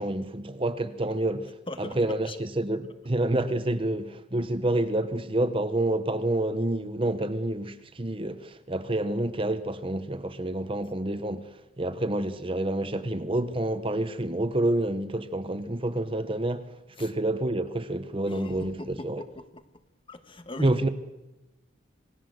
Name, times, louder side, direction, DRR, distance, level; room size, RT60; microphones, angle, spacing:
voice 1, 0.0-1.5 1.8-19.2 20.6-20.9, right 1 dB, 25° right, 1.0 m, -28 dB
voice 2, 1.7-2.4 4.4-4.5 17.0-17.1 18.2-19.8 20.1-20.9, left 2 dB, 25° left, 1.6 m, -41 dB
27.0 x 19.5 x 7.8 m
head